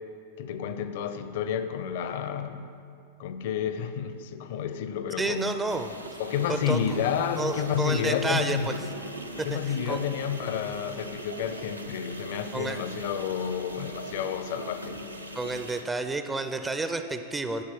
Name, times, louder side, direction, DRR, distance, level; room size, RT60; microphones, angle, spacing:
voice 1, 0.4-2.7 3.2-5.5 6.2-8.7 9.5-15.0, left 8 dB, 50° left, 9 dB, 0.5 m, -30 dB
voice 2, 5.2-5.9 6.5-6.8 7.4-8.7 9.4-9.6 9.9-10.0 12.5-12.9 15.3-17.6, right 3 dB, 15° right, 8 dB, 0.4 m, -30 dB
sound 1, 5.7-15.8, right 1 dB, 85° right, 0.6 m, -41 dB
10.5 x 4.3 x 6.9 m, 2.4 s
figure-of-eight pair, 90°, 0 cm